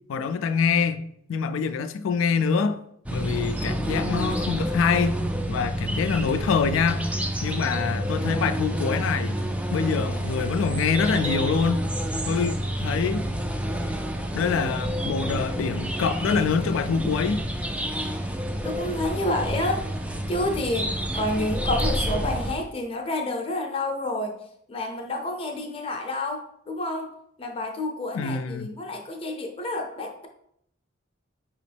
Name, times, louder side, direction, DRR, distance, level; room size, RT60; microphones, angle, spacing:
voice 1, 0.1-1.0 1.3-2.8 3.1-5.2 5.5-7.0 7.4-9.4 9.7-11.9 12.3-13.2 14.3-17.4 28.1-28.8, left 5 dB, 85° left, 0.3 m, -25 dB
sound 1, 3.1-22.6, equal, 5° right, 0.3 m, -28 dB
voice 2, 18.6-19.9 20.3-20.9 21.1-24.3 24.7-27.1 27.4-30.3, left 1 dB, 30° left, 0.6 m, -29 dB
5.0 x 3.0 x 3.3 m
head